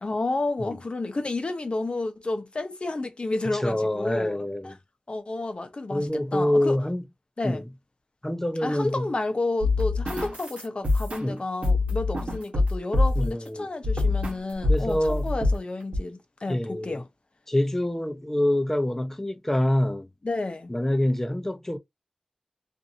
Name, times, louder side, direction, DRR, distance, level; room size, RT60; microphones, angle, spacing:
voice 1, 0.0-4.7 5.1-6.8 7.4-7.6 8.6-17.0 20.2-20.7, left 2 dB, 60° left, 0.7 m, -31 dB
voice 2, 3.5-4.8 5.9-7.0 7.4-7.6 8.2-9.1 11.2-11.4 13.2-13.7 14.7-15.3 16.5-17.0 17.5-20.1 20.7-21.8, left 1 dB, 15° left, 0.6 m, -26 dB
sound 1, 9.6-13.4 13.8-14.4 14.6-15.6 15.9-16.0, left 2 dB, 85° right, 1.0 m, -25 dB
2.6 x 2.5 x 2.6 m
wide cardioid pair, 50°, 2 cm